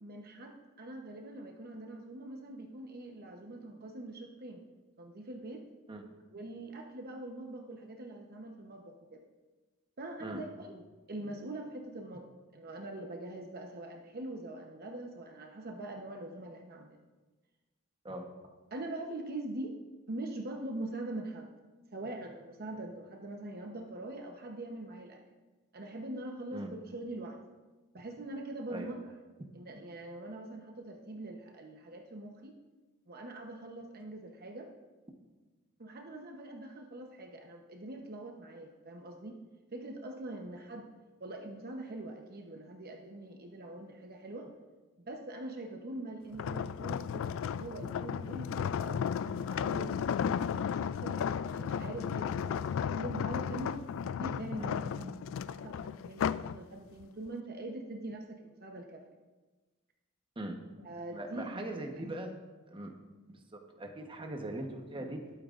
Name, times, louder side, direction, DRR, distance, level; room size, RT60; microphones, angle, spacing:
voice 1, 0.0-4.6 5.0-5.6 6.3-9.2 10.0-12.3 12.5-17.0 18.7-19.8 20.1-21.5 21.9-25.2 25.7-27.4 27.9-29.1 29.5-32.5 33.1-34.7 35.8-39.4 39.7-40.9 41.2-44.5 45.1-50.1 50.6-55.2 55.5-59.0 60.8-62.2, right 2 dB, 45° right, 3 dB, 0.9 m, -43 dB
sound 1, 46.3-56.6 57.0-57.3, left 7 dB, 65° left, 0.3 m, -34 dB
voice 2, 61.1-62.4 62.7-62.9 63.8-65.2, right 1 dB, 25° right, 2 dB, 1.1 m, -40 dB
20.0 x 8.9 x 2.5 m, 1.2 s
head